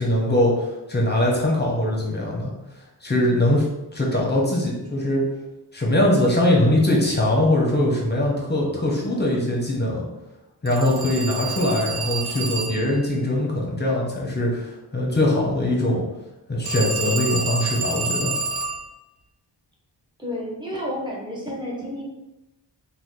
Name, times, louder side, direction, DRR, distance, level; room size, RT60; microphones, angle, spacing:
voice 1, 0.0-2.5 3.0-3.6 3.9-5.3 5.7-10.0 10.6-16.0 16.5-18.3, left 1 dB, 25° left, -3 dB, 0.9 m, -21 dB
Telephone, 10.7-13.0 16.7-18.9, right 3 dB, 90° right, 0.6 m, -28 dB
voice 2, 20.2-22.0, equal, 10° right, -5 dB, 1.0 m, -30 dB
2.9 x 2.3 x 3.7 m, 0.97 s
wide cardioid pair, 70°, 43 cm